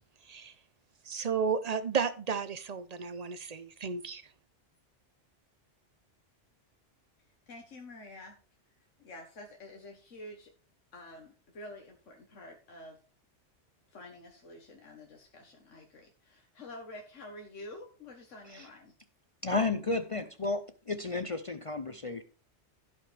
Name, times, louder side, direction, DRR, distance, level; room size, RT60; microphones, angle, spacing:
voice 1, 1.0-4.2, right 6 dB, 40° right, 12 dB, 0.7 m, -33 dB
voice 2, 7.5-8.4 9.0-10.5 10.9-13.0 13.9-18.9, left 1 dB, 85° left, 1 dB, 1.7 m, -48 dB
voice 3, 19.4-22.2, left 3 dB, 40° left, 9 dB, 0.5 m, -32 dB
16.0 x 5.6 x 3.4 m, 0.37 s
omnidirectional pair, 1.2 m